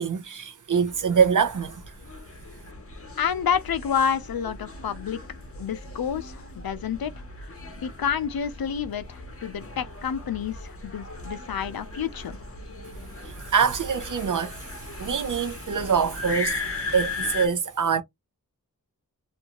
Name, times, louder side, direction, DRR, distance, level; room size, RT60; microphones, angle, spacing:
voice 1, 0.0-1.8 13.2-16.6 16.9-18.0, right 6 dB, 60° right, 0.5 m, -24 dB
sound 1, 0.9-17.5, left 3 dB, 40° left, 0.7 m, -38 dB
voice 2, 3.2-5.2 5.6-7.1 7.8-12.4, left 7 dB, 90° left, 0.5 m, -29 dB
2.5 x 2.2 x 2.9 m
wide cardioid pair, 50°, 35 cm